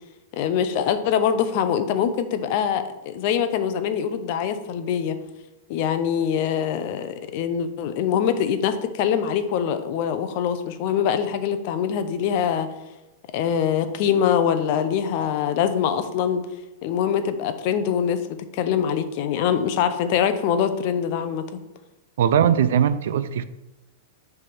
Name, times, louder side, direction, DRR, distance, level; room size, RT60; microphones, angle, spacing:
voice 1, 0.3-5.2 5.7-12.7 13.3-16.4 16.8-18.2 18.5-21.6, left 8 dB, 35° left, 0.5 m, -23 dB
voice 2, 22.2-23.4, right 8 dB, 60° right, 0.4 m, -20 dB
6.5 x 3.4 x 6.0 m
supercardioid pair, 175°, 0 cm